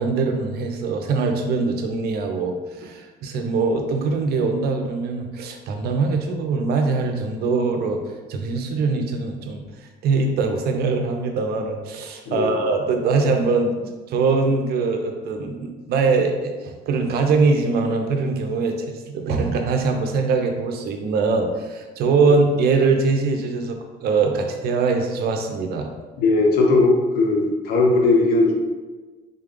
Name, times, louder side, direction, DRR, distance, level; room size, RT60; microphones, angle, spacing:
voice 1, 0.0-8.0 8.3-9.6 10.0-25.9, right 4 dB, 70° right, 4 dB, 0.5 m, -22 dB
voice 2, 26.2-28.5, left 3 dB, 65° left, 0 dB, 0.8 m, -18 dB
3.7 x 2.3 x 3.7 m, 1.3 s
cardioid pair, 110°, 17 cm